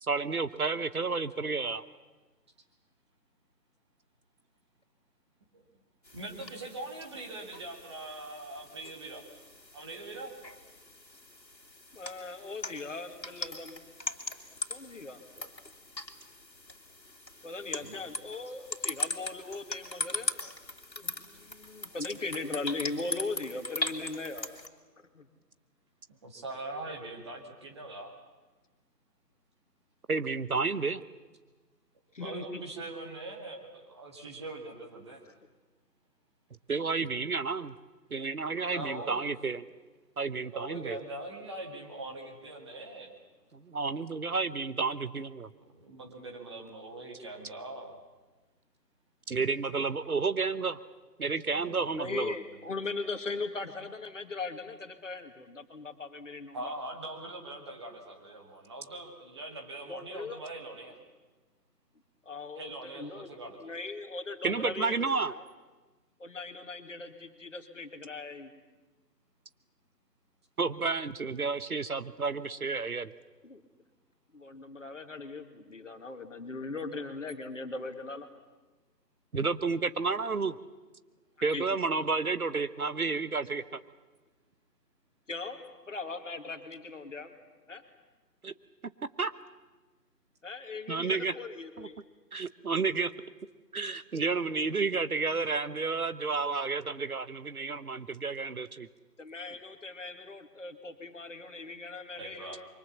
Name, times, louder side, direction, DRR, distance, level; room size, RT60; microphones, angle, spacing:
voice 1, 0.0-1.8 30.1-31.0 36.7-37.7 38.1-39.7 40.2-41.0 43.7-45.5 49.3-50.8 51.2-52.3 64.4-65.3 70.6-73.1 79.3-80.6 81.4-83.8 88.4-88.5 89.2-89.3 90.9-91.3 91.8-91.9 92.3-93.1 93.7-98.9, right 4 dB, 60° right, 14 dB, 1.0 m, -31 dB
sound 1, 6.0-24.7, left 2 dB, 85° left, 2.7 m, -40 dB
voice 2, 6.1-9.3 9.7-10.3 17.8-18.0 26.2-28.1 32.2-35.2 38.7-39.3 40.5-43.1 45.6-48.0 51.5-51.9 56.5-61.0 62.6-63.7 102.2-102.6, right 2 dB, 15° right, 1 dB, 1.9 m, -42 dB
voice 3, 11.9-13.8 14.7-15.2 17.4-20.3 21.0-24.6 25.0-25.3 32.1-32.6 35.3-35.4 51.9-56.7 59.9-60.4 62.2-65.5 66.2-68.5 73.4-73.6 74.3-78.3 81.4-81.7 85.3-85.6 85.9-87.3 87.7-87.8 90.4-92.0 99.2-102.7, left 3 dB, 50° left, 7 dB, 2.3 m, -39 dB
26.5 x 24.0 x 7.2 m, 1.2 s
figure-of-eight pair, 155°, 49 cm